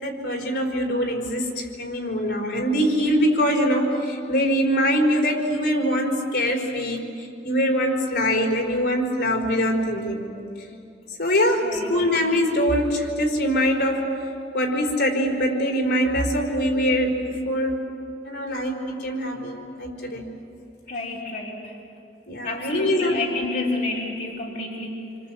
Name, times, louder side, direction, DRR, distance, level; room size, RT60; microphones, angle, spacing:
voice 1, 0.0-10.3 11.2-14.1 14.5-17.8 18.2-20.2 22.3-23.2, equal, 75° left, 0 dB, 4.6 m, -23 dB
voice 2, 11.6-12.0 20.9-21.8 22.4-25.2, left 2 dB, 55° left, -5 dB, 3.5 m, -30 dB
28.5 x 25.5 x 7.7 m, 2.7 s
head